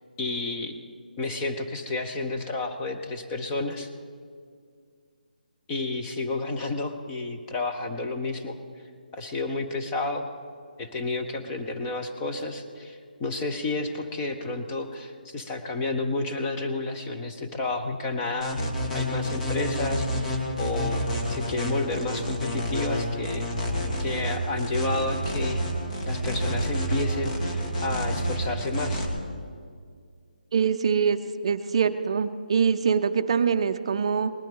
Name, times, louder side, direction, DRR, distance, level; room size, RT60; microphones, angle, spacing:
voice 1, 0.2-0.7 1.2-3.9 5.7-8.6 9.1-10.3 10.8-18.6 18.9-23.5 24.0-25.6 26.1-29.1, left 2 dB, 15° left, 4 dB, 0.7 m, -31 dB
sound 1, 18.4-29.1, equal, 50° left, 2.3 m, -29 dB
voice 2, 30.5-34.3, right 6 dB, 35° right, 9 dB, 0.5 m, -24 dB
19.5 x 12.0 x 3.8 m, 2.1 s
hypercardioid pair, 170°, 5 cm